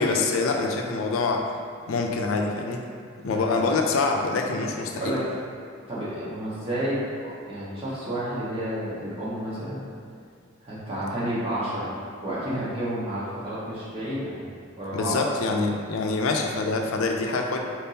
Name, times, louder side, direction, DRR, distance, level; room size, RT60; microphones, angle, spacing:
voice 1, 0.0-1.5 1.9-2.8 3.2-5.2 14.9-17.6, left 3 dB, 85° left, 2 dB, 0.5 m, -25 dB
voice 2, 3.2-3.6 4.9-5.2 5.9-9.8 10.6-11.9 12.2-14.4 14.8-15.2, right 1 dB, 30° right, -10 dB, 1.3 m, -30 dB
4.5 x 3.6 x 2.8 m, 2.3 s
head